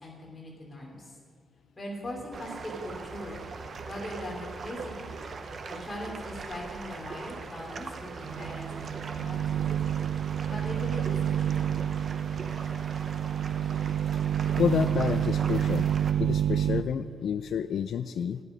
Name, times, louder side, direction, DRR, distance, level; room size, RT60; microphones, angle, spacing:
voice 1, 0.0-1.2 1.8-3.4 3.9-5.1 5.7-9.8 10.5-11.9, left 1 dB, 20° left, -3 dB, 2.9 m, -40 dB
sound 1, 2.3-16.1, right 4 dB, 45° right, 0.7 m, -41 dB
sound 2, 8.2-16.8, right 10 dB, 80° right, 0.4 m, -29 dB
voice 2, 14.6-15.9 16.2-18.4, left 8 dB, 65° left, 11 dB, 0.3 m, -29 dB
11.0 x 9.4 x 5.1 m, 2.1 s
wide cardioid pair, 145°, 0 cm